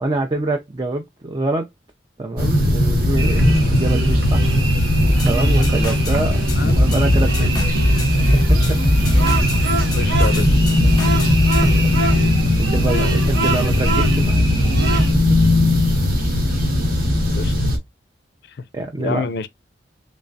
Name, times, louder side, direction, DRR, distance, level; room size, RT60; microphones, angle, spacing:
voice 1, 0.0-1.7 2.2-4.5 4.8-7.5 8.5-8.8 11.2-11.3 11.6-11.7 12.6-14.6 15.1-15.4 18.7-19.3, right 2 dB, 25° right, 0.4 m, -25 dB
sound 1, 2.4-17.8, left 1 dB, 50° right, 1.2 m, -18 dB
sound 2, 3.2-15.1, right 2 dB, 75° right, 1.0 m, -26 dB
sound 3, 5.0-6.2 6.5-9.6 9.9-11.8, left 1 dB, 20° left, 0.8 m, -21 dB
voice 2, 9.9-10.6 17.3-17.5 19.0-19.5, left 4 dB, 60° left, 0.4 m, -27 dB
3.3 x 3.1 x 2.5 m
head